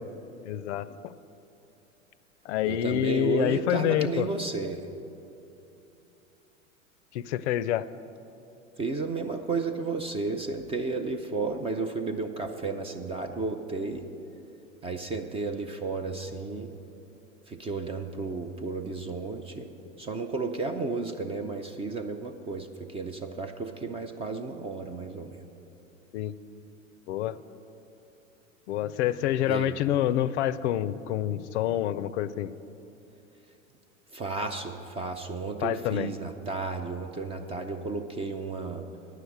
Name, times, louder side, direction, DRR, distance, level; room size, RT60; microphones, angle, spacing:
voice 1, 0.4-1.1 2.4-4.3 7.1-7.9 26.1-26.3 27.1-27.4 28.7-32.5 35.6-36.1, left 12 dB, 60° left, 16 dB, 0.5 m, -27 dB
voice 2, 2.6-4.8 8.8-14.1 14.8-16.7 17.5-19.7 20.0-25.4 29.5-29.8 34.1-38.9, right 3 dB, 15° right, 6 dB, 0.3 m, -33 dB
9.3 x 6.6 x 8.5 m, 2.9 s
hypercardioid pair, 95°, 40 cm